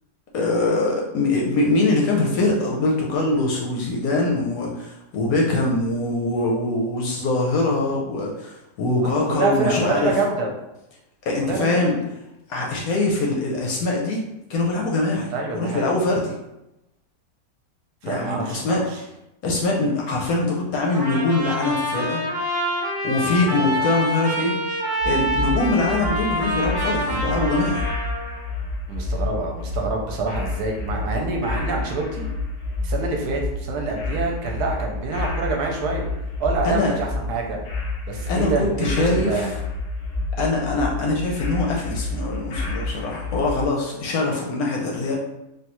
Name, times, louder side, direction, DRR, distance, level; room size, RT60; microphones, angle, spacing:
voice 1, 0.3-10.1 11.3-12.0 12.5-14.2 14.5-15.3 15.5-16.3 18.0-18.8 19.4-22.3 23.0-24.6 25.0-27.8 36.6-36.9 38.3-39.5 40.4-45.1, left 2 dB, 70° left, -1 dB, 0.9 m, -23 dB
voice 2, 9.0-10.5 11.4-12.0 15.3-15.9 18.0-19.0 23.3-23.9 28.9-32.3 32.8-36.1 36.4-37.6 38.1-39.6, right 3 dB, 70° right, 1 dB, 1.0 m, -26 dB
Trumpet, 20.9-28.4, equal, 20° right, 0.6 m, -26 dB
Creepy Industrial Loop, 25.0-43.7, left 2 dB, 85° left, 0.6 m, -29 dB
3.3 x 2.3 x 2.9 m, 0.90 s
omnidirectional pair, 1.9 m